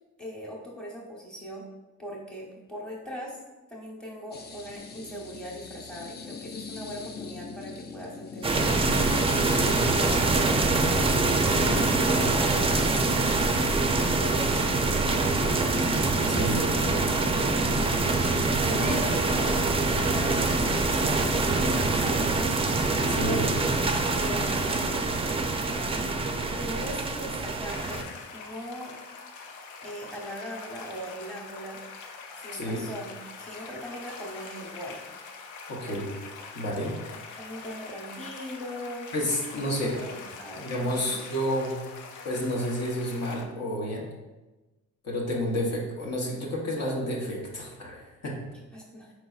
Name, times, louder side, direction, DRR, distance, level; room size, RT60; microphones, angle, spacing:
voice 1, 0.2-1.6 2.0-3.4 3.7-10.9 11.2-13.5 14.1-14.5 15.0-17.0 17.3-17.7 18.5-22.9 23.2-23.7 24.1-25.2 26.6-28.0 28.3-28.9 29.8-31.8 32.4-35.0 35.8-36.0 37.4-39.1 39.9-41.2 48.7-49.1, equal, ahead, -4 dB, 1.0 m, -39 dB
sound 1, 4.3-13.1, left 5 dB, 35° left, 0.5 m, -41 dB
sound 2, 8.4-28.0, right 3 dB, 20° right, 0.4 m, -25 dB
voice 2, 16.3-16.6 23.1-23.5 32.5-32.8 35.7-36.1 36.5-37.0 39.1-40.0 40.6-41.8 42.2-44.0 45.0-48.4, equal, 60° left, -2 dB, 1.0 m, -30 dB
sound 3, 27.7-43.4, left 4 dB, 80° left, 0.6 m, -43 dB
4.6 x 4.0 x 2.4 m, 1.1 s
cardioid pair, 90°, 30 cm